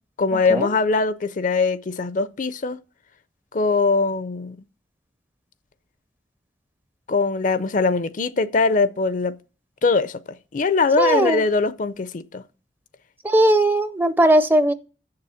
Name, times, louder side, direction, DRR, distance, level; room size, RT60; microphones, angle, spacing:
voice 1, 0.2-2.8 3.5-4.6 7.1-9.3 9.8-10.2 10.5-12.4, left 4 dB, 45° left, 0.5 m, -21 dB
voice 2, 11.0-11.4 13.2-14.7, right 1 dB, 10° right, 0.5 m, -18 dB
7.7 x 6.7 x 7.0 m
head